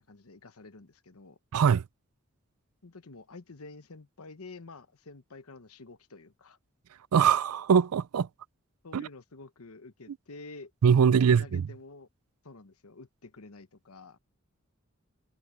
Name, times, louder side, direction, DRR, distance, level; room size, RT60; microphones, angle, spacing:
voice 1, 0.0-1.4 2.8-6.6 8.8-10.7 11.1-12.1 12.4-14.2, left 3 dB, 90° left, 1.1 m, -48 dB
voice 2, 1.5-1.8 7.1-8.3 8.9-9.1 10.8-11.7, right 7 dB, 90° right, 0.4 m, -22 dB
head